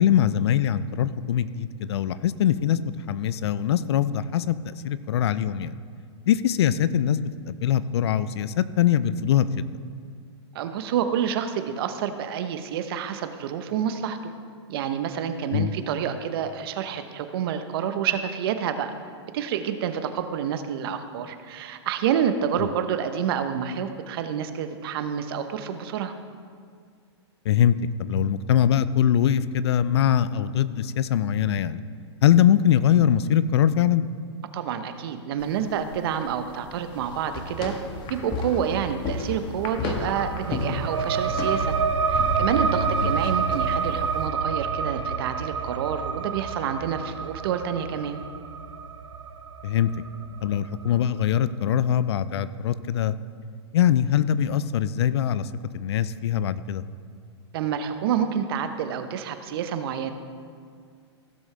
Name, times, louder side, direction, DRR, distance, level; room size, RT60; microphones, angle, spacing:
voice 1, 0.0-5.7 6.3-9.7 15.5-15.7 27.5-31.8 32.2-34.0 43.0-43.1 49.6-49.9 50.4-53.1 53.7-55.4 55.7-56.8, left 10 dB, 65° left, 15 dB, 0.5 m, -22 dB
voice 2, 10.5-14.3 14.7-18.9 19.3-26.1 34.5-37.7 38.1-41.7 42.1-48.2 57.5-60.1, right 8 dB, 55° right, 9 dB, 0.9 m, -28 dB
sound 1, 35.4-44.3, left 2 dB, 35° left, 1.4 m, -34 dB
sound 2, 40.1-51.3, right 5 dB, 85° right, 0.6 m, -28 dB
16.0 x 7.2 x 3.4 m, 2.1 s
hypercardioid pair, 120°, 15 cm